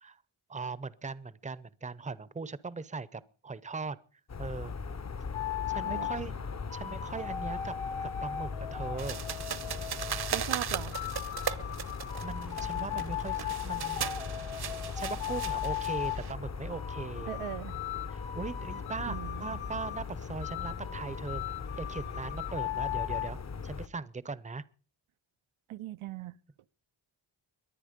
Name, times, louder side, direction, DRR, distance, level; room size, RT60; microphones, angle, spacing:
voice 1, 0.5-4.0 4.4-4.7 5.7-6.4 6.7-7.7 8.0-9.2 12.2-14.0 14.9-17.3 18.1-21.4 21.8-23.4 23.6-24.6, right 4 dB, 15° right, 0.6 m, -39 dB
sound 1, 4.3-23.9, left 5 dB, 35° left, 0.7 m, -39 dB
sound 2, 5.3-6.2 6.7-10.4 10.9-16.2 16.7-20.0 20.4-23.3, left 11 dB, 85° left, 1.1 m, -38 dB
sound 3, 9.0-16.3, right 8 dB, 55° right, 0.9 m, -38 dB
voice 2, 10.3-10.9 17.3-17.8 19.1-19.6 25.7-26.3, right 13 dB, 85° right, 0.6 m, -39 dB
22.5 x 9.2 x 5.1 m
wide cardioid pair, 110°, 47 cm